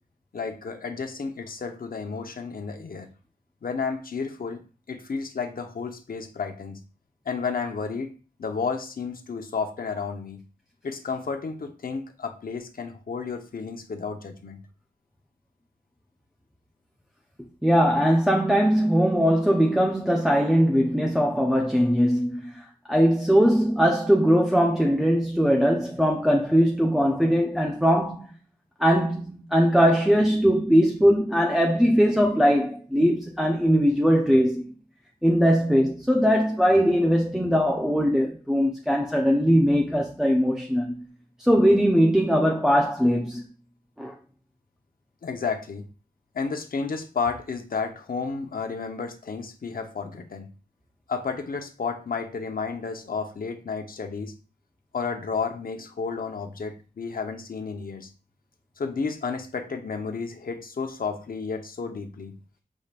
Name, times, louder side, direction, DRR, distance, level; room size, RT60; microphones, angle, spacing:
voice 1, 0.3-3.1 3.6-4.6 4.9-6.8 7.2-8.1 8.4-10.4 10.8-14.6 45.2-45.9 46.3-50.5 51.1-54.3 54.9-58.1 58.8-62.3, left 5 dB, 70° left, 1.0 m, -32 dB
voice 2, 17.6-22.5 22.9-28.3 28.8-34.7 35.2-41.0 41.4-43.4 44.0-44.1, equal, 5° right, 0.7 m, -20 dB
7.4 x 5.1 x 2.5 m
wide cardioid pair, 115°, 16 cm